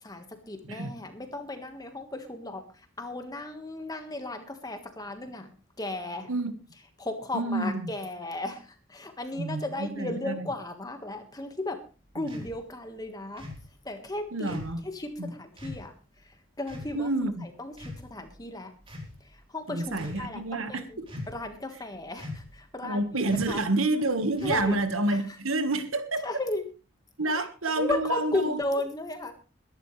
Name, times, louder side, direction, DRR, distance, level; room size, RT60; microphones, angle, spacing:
voice 1, 0.0-5.5 5.8-6.3 7.0-11.8 12.1-13.5 13.8-14.5 14.8-15.9 16.2-17.1 17.4-18.7 19.2-21.0 21.3-23.6 24.4-24.8 25.1-25.2 26.2-26.6 27.3-27.5 27.8-29.3, left 2 dB, 20° left, 6 dB, 1.6 m, -35 dB
voice 2, 0.6-0.9 6.3-6.5 7.3-7.9 9.4-10.5 12.2-12.3 14.3-14.8 15.2-15.3 16.9-17.5 19.7-21.2 22.8-26.2 27.2-28.6, right 2 dB, 85° right, 9 dB, 1.5 m, -29 dB
sound 1, 12.3-12.5 13.4-13.7 14.5-14.8 15.6-15.8 16.7-17.0 17.7-18.3 18.8-19.2 19.9-20.2 21.1-21.5 22.2-22.6 23.3-23.6 24.4-24.8, left 2 dB, 25° right, 3.6 m, -40 dB
22.0 x 11.5 x 3.3 m, 0.32 s
head